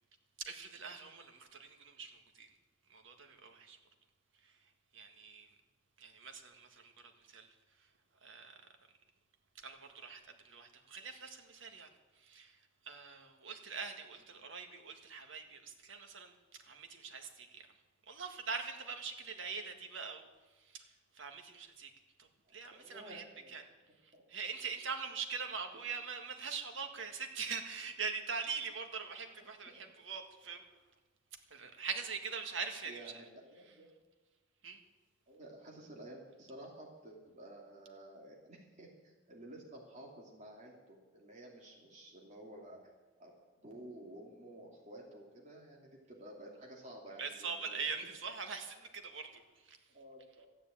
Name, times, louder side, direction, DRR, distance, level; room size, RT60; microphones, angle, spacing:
voice 1, 0.4-2.5 2.9-3.8 4.4-4.6 4.9-5.6 6.0-7.5 8.2-8.6 9.6-11.9 12.2-17.7 18.1-20.3 20.6-20.9 21.1-21.9 22.2-23.6 24.0-30.6 31.5-33.2 34.6-34.8 47.2-49.8, right 5 dB, 75° right, 5 dB, 1.8 m, -43 dB
voice 2, 22.5-23.6 24.1-24.2 29.7-29.8 32.9-33.9 35.3-42.9 43.2-47.8 49.9-50.5, right 1 dB, 35° right, -2 dB, 2.8 m, -52 dB
13.5 x 10.0 x 8.7 m, 1.2 s
head